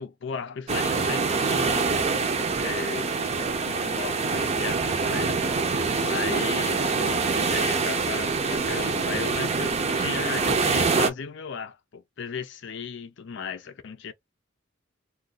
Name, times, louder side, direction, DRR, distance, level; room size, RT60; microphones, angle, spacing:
voice 1, 0.0-2.2 2.5-5.4 6.0-14.1, left 6 dB, 65° left, 0.5 m, -36 dB
sound 1, 0.7-11.1, right 4 dB, 35° right, 0.6 m, -25 dB
2.4 x 2.3 x 3.7 m
head